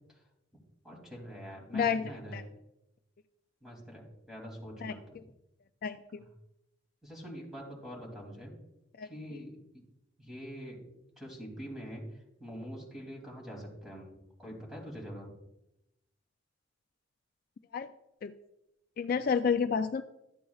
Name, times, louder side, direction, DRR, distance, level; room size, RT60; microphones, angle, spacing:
voice 1, 0.8-2.4 3.6-5.0 6.2-6.3 7.0-8.5 9.0-9.8 10.2-10.8 11.2-15.3, equal, ahead, -2 dB, 2.8 m, -44 dB
voice 2, 1.7-2.0 2.3-2.4 4.8-4.9 5.8-6.2 9.0-9.1 17.7-17.9 18.2-18.3 19.0-20.0, left 6 dB, 50° left, 10 dB, 0.3 m, -29 dB
12.5 x 8.1 x 2.4 m, 0.86 s
head